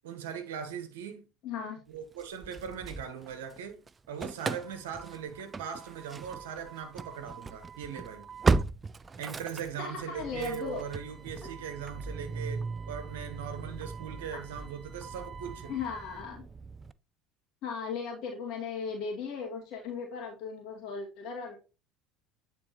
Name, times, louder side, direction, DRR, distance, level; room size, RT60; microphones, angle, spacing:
voice 1, 0.0-1.2 1.9-3.8 4.1-8.3 9.2-15.7, right 8 dB, 75° right, 1.1 m, -40 dB
voice 2, 1.4-1.8 9.8-10.9 11.4-11.5 14.3-14.4 15.7-16.4 17.6-21.6, left 5 dB, 60° left, 2.3 m, -37 dB
Engine starting / Slam, 2.2-3.6 3.9-16.9, right 4 dB, 25° right, 0.4 m, -36 dB
8.9 x 4.3 x 3.0 m
hypercardioid pair, 70°, 0 cm